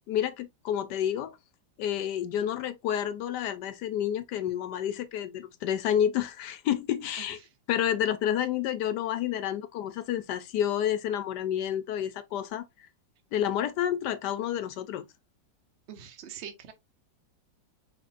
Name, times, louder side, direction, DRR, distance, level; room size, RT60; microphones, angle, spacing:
voice 1, 0.1-1.4 1.8-7.4 7.7-12.6 13.3-15.0, left 10 dB, 75° left, 1.1 m, -29 dB
voice 2, 15.9-16.7, right 8 dB, 45° right, 0.9 m, -43 dB
4.9 x 4.0 x 2.5 m
omnidirectional pair, 2.0 m